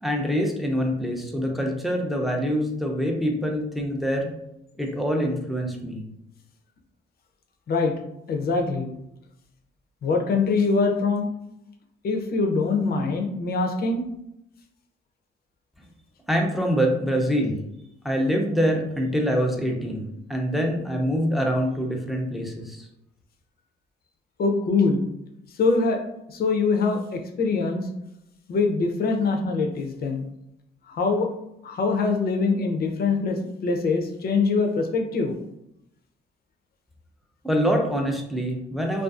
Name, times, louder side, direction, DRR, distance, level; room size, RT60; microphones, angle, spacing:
voice 1, 0.0-4.3 4.8-6.0 16.3-17.6 18.0-22.9 37.4-39.0, equal, ahead, 0 dB, 0.5 m, -25 dB
voice 2, 8.3-8.9 10.0-11.3 12.0-14.0 24.4-25.1 25.6-26.0 26.3-27.9 28.5-30.3 30.9-31.3 31.6-35.3, left 4 dB, 50° left, 3 dB, 0.5 m, -23 dB
2.4 x 2.3 x 2.3 m, 0.81 s
cardioid pair, 90°, 20 cm